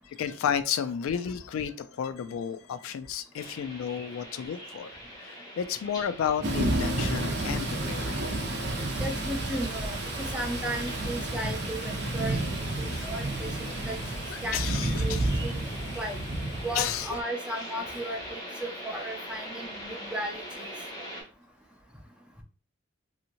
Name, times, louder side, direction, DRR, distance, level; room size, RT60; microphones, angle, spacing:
voice 1, 0.2-4.9 5.2-8.2 12.9-13.1 14.3-15.3 16.7-17.2, left 8 dB, 80° left, 13 dB, 0.3 m, -32 dB
sound 1, 3.3-21.2, equal, 20° left, 1.3 m, -42 dB
Thunder / Rain, 6.4-17.2, right 2 dB, 55° right, 0.7 m, -31 dB
voice 2, 9.0-13.5 13.9-15.6 16.0-16.2 16.6-20.7, right 1 dB, 5° right, 2 dB, 0.5 m, -36 dB
2.8 x 2.8 x 2.6 m, 0.37 s
head